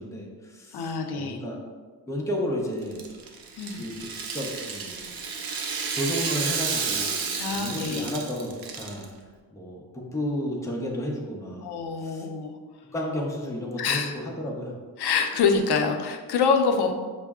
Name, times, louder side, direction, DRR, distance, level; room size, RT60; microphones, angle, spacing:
voice 1, 0.0-1.6 2.1-3.0 3.8-5.1 5.9-7.2 7.5-9.1 9.5-11.7 12.0-12.3 12.9-14.8, equal, 10° left, -2 dB, 0.5 m, -32 dB
voice 2, 0.7-1.4 3.6-3.8 7.4-8.1 11.6-12.6 13.8-14.1 15.0-16.9, left 5 dB, 85° left, 5 dB, 0.5 m, -25 dB
Rattle (instrument), 2.8-9.0, right 5 dB, 65° right, 0.6 m, -31 dB
5.4 x 2.0 x 3.5 m, 1.5 s
wide cardioid pair, 145°, 38 cm